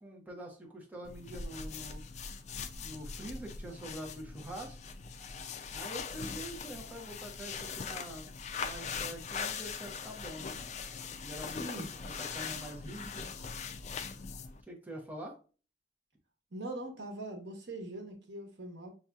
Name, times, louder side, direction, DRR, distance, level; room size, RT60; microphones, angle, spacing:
voice 1, 0.0-2.1 2.8-4.8 5.7-8.3 8.6-10.6 11.2-13.4 14.7-15.4, right 1 dB, 10° right, 0.9 m, -45 dB
sound 1, 1.0-14.6, left 5 dB, 40° left, 0.3 m, -41 dB
voice 2, 11.6-11.9 16.5-18.9, right 1 dB, 80° right, 1.0 m, -42 dB
5.6 x 2.8 x 2.3 m
head